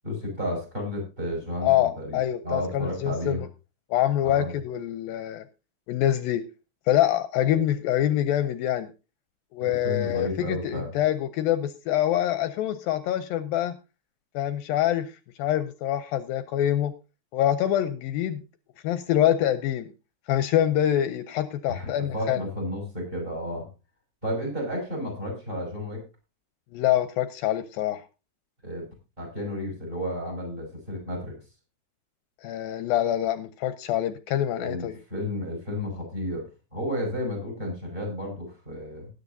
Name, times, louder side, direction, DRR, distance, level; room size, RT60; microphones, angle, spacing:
voice 1, 0.0-3.4 4.2-4.5 7.5-7.6 9.6-10.9 21.7-23.7 24.2-26.0 28.6-28.9 29.2-31.3 34.5-36.4 36.7-39.1, left 1 dB, 15° right, 1 dB, 5.8 m, -32 dB
voice 2, 1.6-3.5 3.9-5.4 5.9-6.4 6.9-8.9 9.5-13.7 14.3-15.1 15.4-16.9 17.3-18.4 18.8-19.9 20.3-22.4 26.7-28.0 32.4-35.0, left 12 dB, 80° left, 11 dB, 2.3 m, -25 dB
19.5 x 9.6 x 2.7 m, 0.30 s
omnidirectional pair, 4.3 m